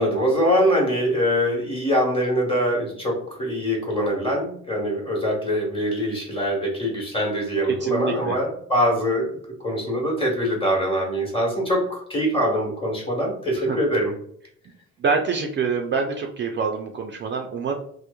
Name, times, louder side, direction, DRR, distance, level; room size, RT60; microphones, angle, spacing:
voice 1, 0.0-14.2, equal, 20° left, -2 dB, 1.1 m, -23 dB
voice 2, 7.7-8.4 13.6-13.8 15.0-17.7, right 5 dB, 40° right, 3 dB, 0.4 m, -26 dB
2.9 x 2.1 x 2.2 m, 0.65 s
cardioid pair, 90°, 30 cm